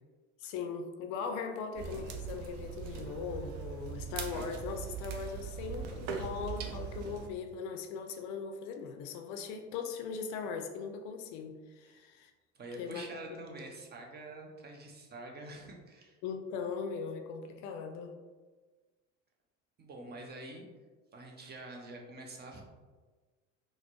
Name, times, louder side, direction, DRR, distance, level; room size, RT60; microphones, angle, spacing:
voice 1, 0.4-12.3 12.8-13.2 16.2-18.2, left 5 dB, 55° left, 5 dB, 0.4 m, -39 dB
sound 1, 1.8-7.3, right 7 dB, 65° right, 0.6 m, -40 dB
voice 2, 12.5-16.2 19.8-20.7 21.1-22.6, right 2 dB, 25° right, 1 dB, 0.6 m, -46 dB
3.9 x 2.1 x 2.9 m, 1.3 s
hypercardioid pair, 65°, 36 cm